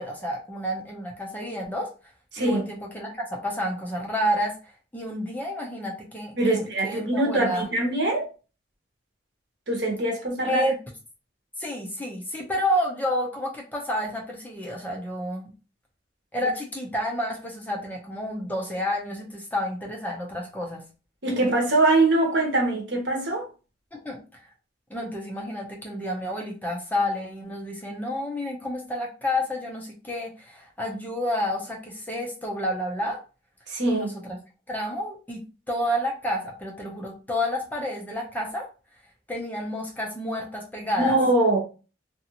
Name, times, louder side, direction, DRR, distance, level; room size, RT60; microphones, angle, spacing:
voice 1, 0.0-1.9 2.4-4.5 4.9-7.7 10.4-10.8 11.6-15.5 16.3-20.8 23.9-24.4 24.9-33.2 33.9-34.4 34.7-35.4 35.7-38.7 39.3-41.2, left 1 dB, 10° left, -1 dB, 0.6 m, -30 dB
voice 2, 2.3-2.6 6.4-8.3 9.7-10.6 21.2-23.5 33.7-34.1 41.0-41.6, right 2 dB, 65° right, 1 dB, 1.0 m, -23 dB
2.7 x 2.5 x 2.8 m, 0.34 s
head